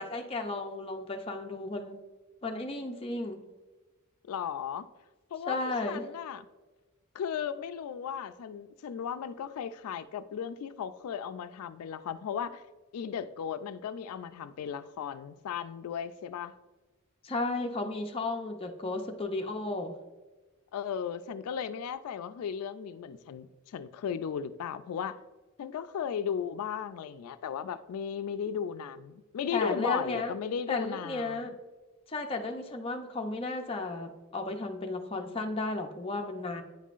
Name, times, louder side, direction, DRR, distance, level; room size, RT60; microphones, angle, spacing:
voice 1, 0.0-1.9 2.4-3.4 5.5-6.0 17.2-19.9 29.5-30.3 30.7-31.5 32.1-36.6, left 2 dB, 25° left, 3 dB, 0.5 m, -34 dB
voice 2, 4.3-4.9 5.3-6.4 7.1-12.6 12.9-16.5 20.7-25.2 25.6-31.4, left 7 dB, 90° left, 12 dB, 0.3 m, -36 dB
9.1 x 5.4 x 2.5 m, 1.2 s
head